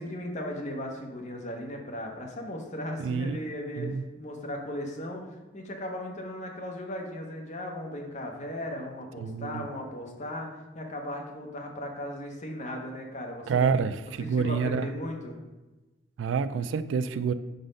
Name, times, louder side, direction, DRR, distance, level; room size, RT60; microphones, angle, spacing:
voice 1, 0.0-5.2 5.5-13.7 14.2-15.4, left 1 dB, 40° left, 2 dB, 0.9 m, -37 dB
voice 2, 3.0-3.4 3.8-4.0 9.2-9.7 13.5-14.9 16.2-17.3, right 5 dB, 70° right, 13 dB, 0.3 m, -28 dB
5.1 x 4.0 x 5.2 m, 1.1 s
head